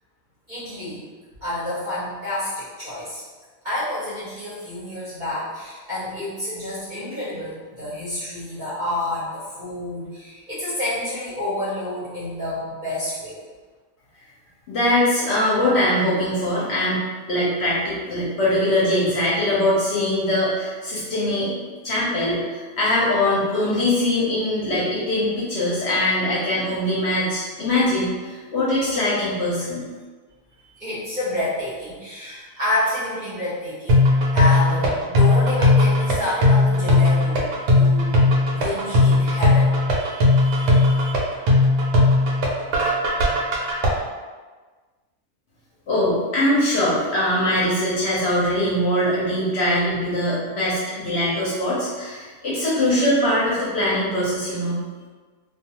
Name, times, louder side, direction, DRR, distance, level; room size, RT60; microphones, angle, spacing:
voice 1, 0.5-1.1 1.4-3.2 3.6-13.4 30.7-34.0 34.3-38.2 38.5-41.1, left 1 dB, 40° right, -10 dB, 0.7 m, -29 dB
voice 2, 14.7-17.0 17.3-29.8 45.9-54.8, left 1 dB, 60° left, -8 dB, 0.8 m, -22 dB
sound 1, 33.9-43.9, left 2 dB, 80° right, 1.1 m, -17 dB
2.4 x 2.3 x 2.8 m, 1.4 s
omnidirectional pair, 1.5 m